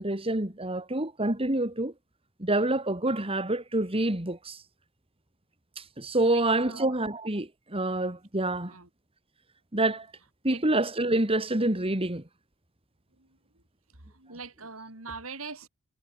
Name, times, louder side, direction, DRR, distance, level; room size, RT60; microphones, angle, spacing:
voice 1, 0.0-1.9 2.4-4.6 5.8-8.8 9.7-10.1 10.4-12.2, right 2 dB, 25° right, 2.8 m, -27 dB
voice 2, 6.2-6.9 8.7-8.8 10.5-10.6 14.2-15.7, right 4 dB, 75° right, 5.0 m, -41 dB
head